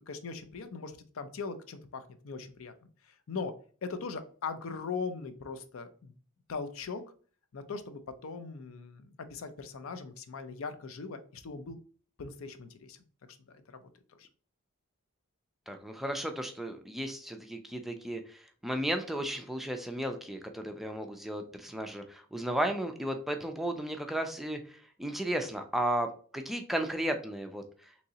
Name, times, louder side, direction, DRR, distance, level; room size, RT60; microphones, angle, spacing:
voice 1, 0.0-2.7 3.3-3.5 3.8-6.1 6.5-7.0 7.5-11.8 12.2-13.0 13.3-13.8 14.2-14.3, left 4 dB, 70° left, 10 dB, 0.5 m, -40 dB
voice 2, 15.7-27.6, right 1 dB, ahead, 5 dB, 0.3 m, -34 dB
3.6 x 3.0 x 2.8 m, 0.43 s
head